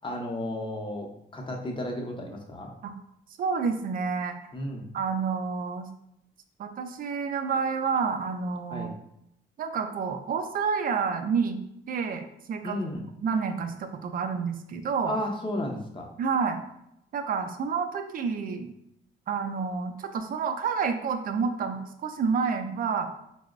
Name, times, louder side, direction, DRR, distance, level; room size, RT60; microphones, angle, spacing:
voice 1, 0.0-2.7 4.5-4.9 8.7-8.9 12.6-13.1 15.0-16.1, left 1 dB, 25° left, 1 dB, 0.6 m, -33 dB
voice 2, 3.4-4.4 4.9-5.9 6.6-8.9 9.6-11.6 11.9-12.8 13.2-15.1 16.2-16.6 17.1-18.7 19.3-23.1, right 5 dB, 45° right, 7 dB, 0.4 m, -29 dB
4.2 x 2.0 x 2.4 m, 0.79 s
cardioid pair, 90°, 20 cm